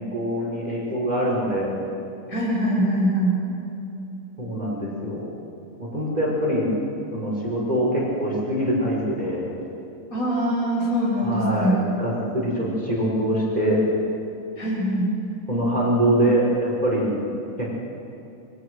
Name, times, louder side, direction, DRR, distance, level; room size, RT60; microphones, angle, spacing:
voice 1, 0.0-1.7 4.4-5.3 5.8-6.7 7.1-9.5 11.2-13.8 15.5-17.1 17.6-17.7, right 1 dB, 30° right, -5 dB, 6.1 m, -24 dB
voice 2, 2.3-3.4 10.1-11.8 14.6-15.1, right 1 dB, 80° left, -4 dB, 7.7 m, -23 dB
26.5 x 23.5 x 6.5 m, 2.7 s
omnidirectional pair, 1.5 m